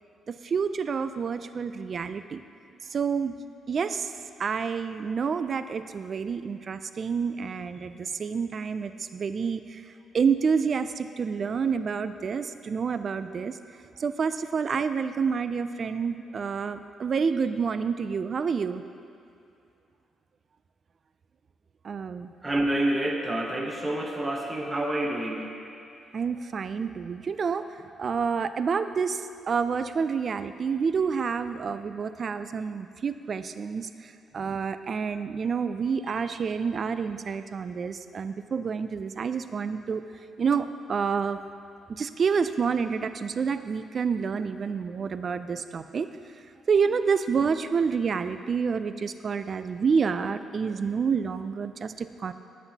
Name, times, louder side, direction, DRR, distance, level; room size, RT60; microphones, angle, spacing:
voice 1, 0.3-2.4 2.9-3.4 3.7-4.1 4.4-9.8 10.1-13.5 14.0-18.8 21.8-22.3 26.1-27.6 28.0-29.2 29.5-33.9 34.3-40.0 40.4-41.4 42.0-46.1 46.7-52.3, right 6 dB, 45° right, 11 dB, 0.3 m, -28 dB
voice 2, 22.4-25.5, right 1 dB, 20° right, 1 dB, 0.9 m, -28 dB
9.7 x 7.9 x 2.8 m, 2.6 s
cardioid pair, 90°, 0 cm